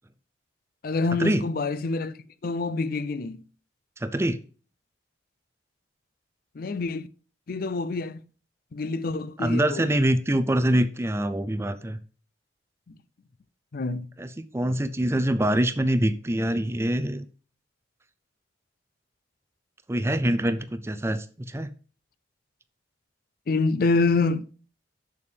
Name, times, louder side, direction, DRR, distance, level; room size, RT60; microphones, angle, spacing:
voice 1, 0.8-2.1 2.4-3.4 6.6-7.1 7.5-8.2 8.7-9.9 13.7-14.1 23.5-24.4, left 3 dB, 50° left, 0.4 m, -26 dB
voice 2, 4.0-4.4 9.4-12.0 14.2-17.3 19.9-21.7, right 1 dB, 15° right, 0.5 m, -25 dB
6.9 x 6.8 x 3.4 m
head